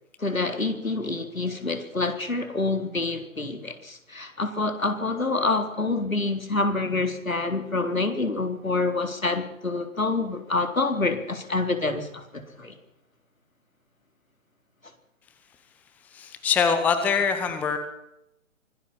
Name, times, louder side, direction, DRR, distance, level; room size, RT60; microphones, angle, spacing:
voice 1, 0.2-12.7, left 3 dB, 80° left, 6 dB, 4.0 m, -27 dB
voice 2, 16.1-17.8, left 6 dB, 5° left, 9 dB, 0.9 m, -23 dB
25.0 x 18.0 x 5.8 m, 0.84 s
figure-of-eight pair, 135°, 40 cm